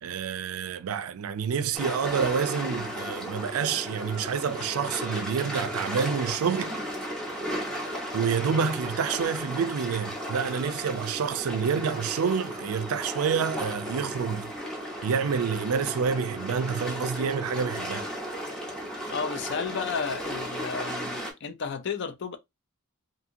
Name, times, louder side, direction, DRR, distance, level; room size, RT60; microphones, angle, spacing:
voice 1, 0.0-6.8 8.1-14.5 15.0-18.1, right 6 dB, 80° right, 0.4 m, -28 dB
sound 1, 1.7-21.3, equal, 5° left, 0.7 m, -35 dB
voice 2, 19.1-22.4, left 5 dB, 55° left, 0.4 m, -32 dB
2.8 x 2.6 x 2.6 m
head